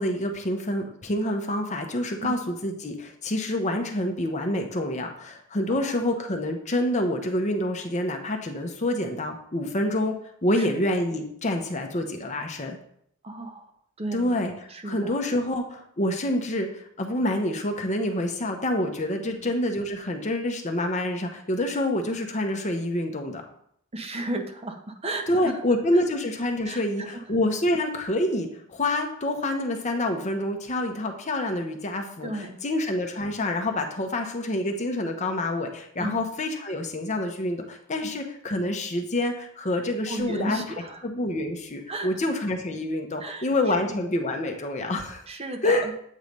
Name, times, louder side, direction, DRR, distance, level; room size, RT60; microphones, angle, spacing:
voice 1, 0.0-10.1 10.4-12.8 14.1-14.5 14.8-23.4 25.3-40.6 41.0-45.2 45.6-45.9, left 1 dB, 30° left, 4 dB, 0.7 m, -27 dB
voice 2, 13.2-13.7 14.0-14.3 14.7-15.2 19.3-19.4 23.9-25.5 25.9-26.0 26.6-27.2 32.2-32.6 36.0-36.2 38.0-38.1 40.1-41.0 41.9-42.1 43.2-43.5 43.8-43.9 45.3-45.9, right 1 dB, 25° right, 4 dB, 0.7 m, -34 dB
8.3 x 3.2 x 5.2 m, 0.69 s
head